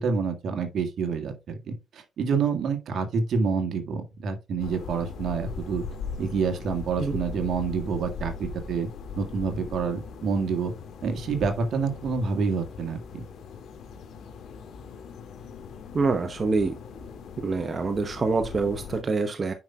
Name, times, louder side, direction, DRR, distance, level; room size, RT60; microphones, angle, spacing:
voice 1, 0.0-5.8 6.2-8.9 9.2-10.7 11.0-13.2, right 5 dB, 65° right, 1.8 m, -28 dB
sound 1, 4.6-19.0, left 5 dB, 75° left, 2.0 m, -39 dB
voice 2, 15.9-16.8 17.4-19.5, right 4 dB, 35° right, 0.9 m, -26 dB
9.5 x 5.6 x 2.3 m
cardioid pair, 90°, 0 cm